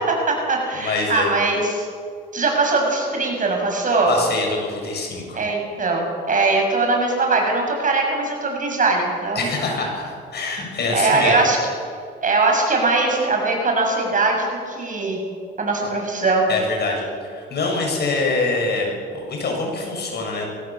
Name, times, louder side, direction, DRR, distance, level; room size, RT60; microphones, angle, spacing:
voice 1, 0.0-1.9 2.3-4.1 5.3-9.5 10.9-11.6 12.2-15.2 15.6-16.4, right 3 dB, 40° right, 1 dB, 7.1 m, -21 dB
voice 2, 0.7-1.3 4.1-5.4 9.3-11.4 16.5-20.5, left 3 dB, 55° left, 1 dB, 7.3 m, -25 dB
22.5 x 17.0 x 7.6 m, 2.2 s
cardioid pair, 90°, 20 cm